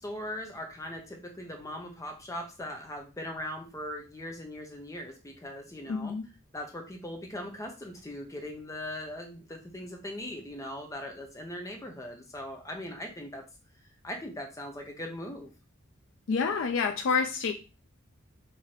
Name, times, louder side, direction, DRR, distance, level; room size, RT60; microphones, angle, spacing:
voice 1, 0.0-6.1 6.5-13.4 14.0-15.5, left 1 dB, 15° left, 2 dB, 0.7 m, -40 dB
voice 2, 5.9-6.2 16.3-17.5, left 5 dB, 65° left, 5 dB, 0.4 m, -28 dB
4.7 x 2.8 x 2.9 m, 0.31 s
head